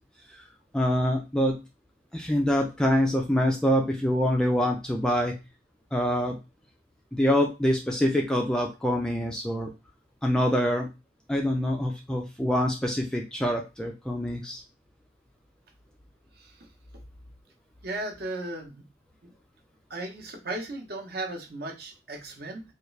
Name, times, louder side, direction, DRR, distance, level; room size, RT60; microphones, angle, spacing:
voice 1, 0.7-1.6 2.1-5.3 5.9-6.4 7.1-9.7 10.2-10.9 11.3-14.6, equal, 5° left, 1 dB, 0.3 m, -25 dB
voice 2, 16.3-16.7 17.8-18.8 19.2-19.3 19.9-22.6, right 2 dB, 50° right, 3 dB, 0.7 m, -36 dB
3.5 x 2.3 x 3.1 m, 0.26 s
head